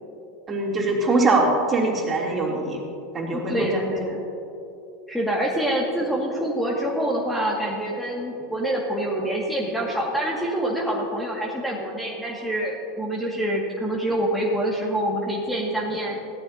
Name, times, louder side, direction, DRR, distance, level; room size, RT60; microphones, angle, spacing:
voice 1, 0.5-2.8 3.1-3.7, right 2 dB, 30° right, -2 dB, 3.0 m, -22 dB
voice 2, 3.3-4.2 5.1-16.2, right 1 dB, ahead, -3 dB, 1.9 m, -26 dB
17.5 x 13.5 x 2.8 m, 2.7 s
hypercardioid pair, 85°, 0 cm